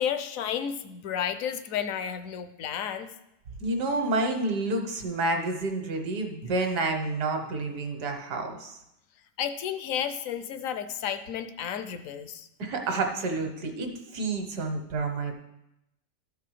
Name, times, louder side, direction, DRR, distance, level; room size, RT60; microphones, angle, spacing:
voice 1, 0.0-3.1 9.4-12.5, left 8 dB, 65° left, 10 dB, 0.9 m, -32 dB
voice 2, 3.6-8.8 12.6-15.3, right 2 dB, 70° right, 4 dB, 1.7 m, -29 dB
13.0 x 4.7 x 4.9 m, 0.87 s
omnidirectional pair, 1.8 m